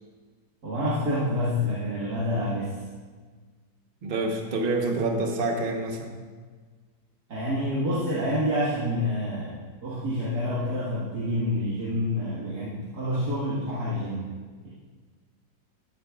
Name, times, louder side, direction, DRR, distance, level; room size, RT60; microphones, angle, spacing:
voice 1, 0.6-2.8 7.3-14.3, left 1 dB, 65° right, -8 dB, 2.2 m, -28 dB
voice 2, 4.0-6.2, right 2 dB, 40° right, 3 dB, 1.0 m, -27 dB
14.5 x 10.0 x 2.3 m, 1.5 s
omnidirectional pair, 1.8 m